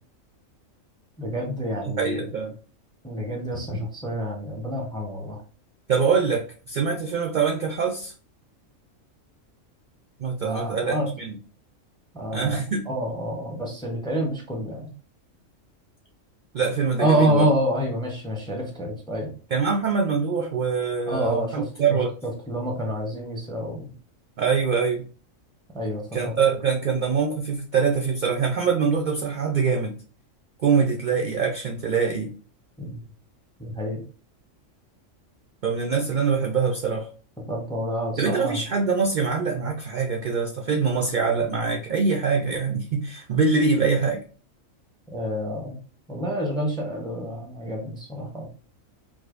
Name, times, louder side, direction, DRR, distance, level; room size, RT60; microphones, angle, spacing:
voice 1, 1.2-2.3 3.0-5.4 10.4-11.1 12.1-12.6 12.9-14.8 17.0-19.3 21.1-21.6 22.5-23.9 25.7-26.4 32.8-33.0 33.6-34.0 37.5-38.6 45.1-45.8 46.1-48.5, right 1 dB, 5° left, 0 dB, 0.5 m, -27 dB
voice 2, 1.8-2.5 5.9-8.1 10.2-11.4 12.3-12.8 16.5-17.5 19.5-22.1 24.4-25.0 26.1-30.0 30.6-32.3 35.6-37.1 38.2-44.2, right 5 dB, 70° right, 1 dB, 0.4 m, -24 dB
4.9 x 2.1 x 2.4 m, 0.38 s
omnidirectional pair, 1.4 m